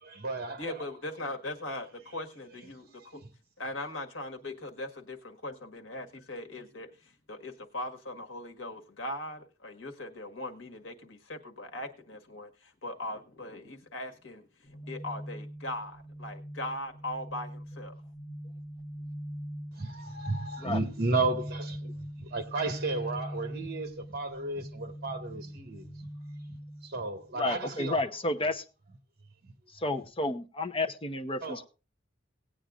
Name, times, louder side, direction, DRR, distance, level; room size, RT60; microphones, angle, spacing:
voice 1, 0.0-0.7 19.8-26.1 26.5-26.6 26.8-28.0 29.4-29.5 31.4-31.7, right 3 dB, 55° right, 1.7 m, -33 dB
voice 2, 0.6-3.2 3.6-18.0, left 1 dB, 70° left, 1.6 m, -40 dB
sound 1, 14.6-27.7, equal, ahead, 4.1 m, -42 dB
voice 3, 27.3-28.6 29.8-31.7, left 2 dB, 25° left, 0.8 m, -31 dB
18.5 x 8.7 x 2.5 m
head